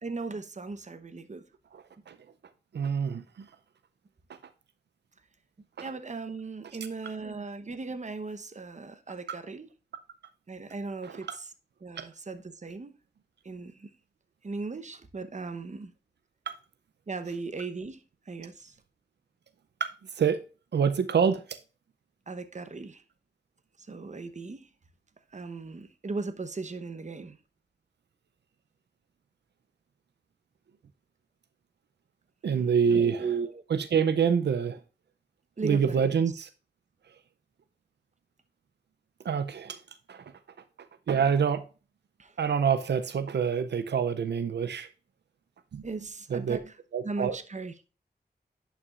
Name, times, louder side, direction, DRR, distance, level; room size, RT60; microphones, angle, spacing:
voice 1, 0.0-1.4 5.8-9.7 10.5-11.5 11.8-13.0 13.4-13.9 14.4-15.9 17.1-18.7 22.3-23.0 23.8-24.7 25.3-27.4 32.5-33.6 35.6-36.1 42.2-42.4 45.8-46.8 47.0-47.7, right 4 dB, 45° right, 0.9 m, -37 dB
voice 2, 1.7-2.1 2.7-3.5 7.3-7.4 12.0-12.1 16.5-16.6 19.8-19.9 20.2-20.4 20.7-21.6 32.4-33.2 33.9-34.8 35.6-36.5 39.2-39.8 40.1-40.2 41.1-41.6 42.4-44.9 45.7-45.8 46.3-46.6 46.9-47.4, right 7 dB, 90° right, 0.5 m, -26 dB
11.0 x 5.8 x 2.4 m
wide cardioid pair, 75°, 17 cm